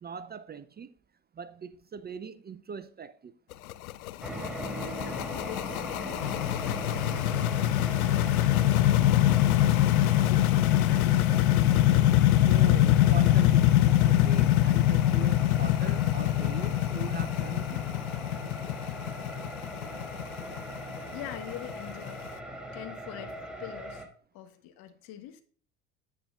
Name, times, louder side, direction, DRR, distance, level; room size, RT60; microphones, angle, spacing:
voice 1, 0.0-0.9 1.4-3.3 12.4-17.9, right 6 dB, 25° right, 0.6 m, -42 dB
sound 1, 3.5-22.3, left 14 dB, 80° left, 0.6 m, -24 dB
sound 2, 4.2-24.1, equal, ahead, 2.6 m, -40 dB
voice 2, 5.0-9.5 9.9-12.1 21.1-24.0 24.3-25.4, left 11 dB, 60° left, 1.5 m, -44 dB
10.5 x 8.6 x 2.4 m
hypercardioid pair, 65°, 42 cm